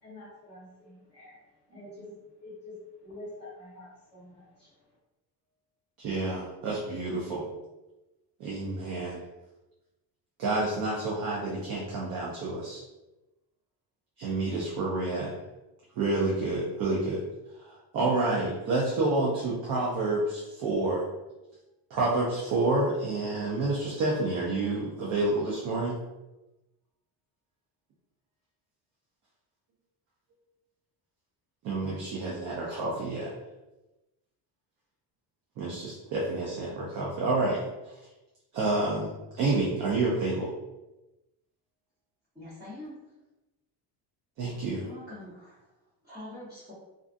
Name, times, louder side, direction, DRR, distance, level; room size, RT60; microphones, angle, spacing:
voice 1, 0.0-1.4 1.7-2.1 2.4-4.9, left 2 dB, 25° left, -11 dB, 0.9 m, -47 dB
voice 2, 6.0-7.5 8.4-9.2 10.4-12.8 14.2-15.3 16.0-17.2 17.6-21.1 21.9-26.0 31.6-33.3 35.6-37.9 38.5-40.5 44.4-44.8, right 2 dB, 50° right, -4 dB, 0.5 m, -29 dB
voice 3, 42.3-43.0 44.8-45.7 46.0-46.7, left 1 dB, 10° right, -16 dB, 0.9 m, -44 dB
2.5 x 2.4 x 2.4 m, 1.0 s
cardioid pair, 175°, 44 cm